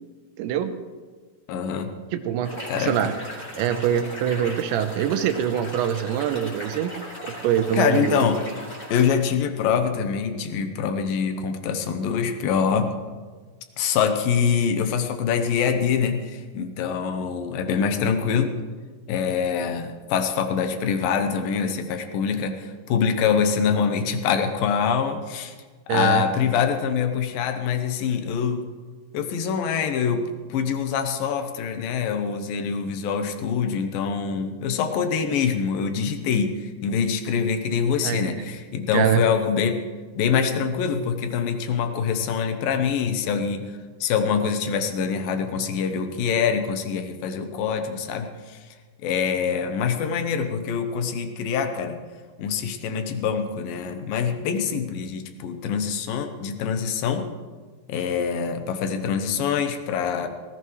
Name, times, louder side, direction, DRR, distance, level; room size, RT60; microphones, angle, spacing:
voice 1, 0.4-0.7 2.1-3.1 3.5-6.9 7.2-8.3 25.9-26.2 38.0-38.2 38.9-39.2, right 9 dB, 90° right, 9 dB, 3.1 m, -24 dB
voice 2, 1.5-1.9 2.7-3.1 7.8-8.4 8.9-12.9 13.8-18.6 19.1-25.5 25.9-28.6 29.1-39.8 40.2-43.6 44.0-48.6 49.0-52.0 52.4-57.3 57.9-60.3, left 6 dB, 75° left, 7 dB, 2.2 m, -24 dB
sound 1, 2.4-9.1, equal, 15° left, 3.2 m, -38 dB
18.0 x 17.0 x 3.2 m, 1.5 s
omnidirectional pair, 5.2 m